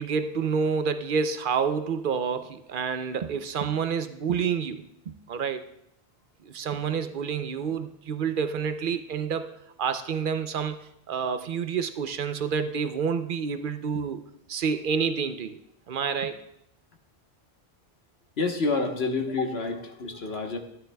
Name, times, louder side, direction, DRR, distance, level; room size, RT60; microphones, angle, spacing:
voice 1, 0.0-5.6 6.5-14.2 14.5-15.6 15.9-16.4, right 6 dB, 60° right, 9 dB, 0.7 m, -28 dB
voice 2, 18.4-20.6, left 3 dB, 70° left, 3 dB, 1.4 m, -28 dB
13.5 x 11.5 x 2.3 m, 0.80 s
omnidirectional pair, 1.1 m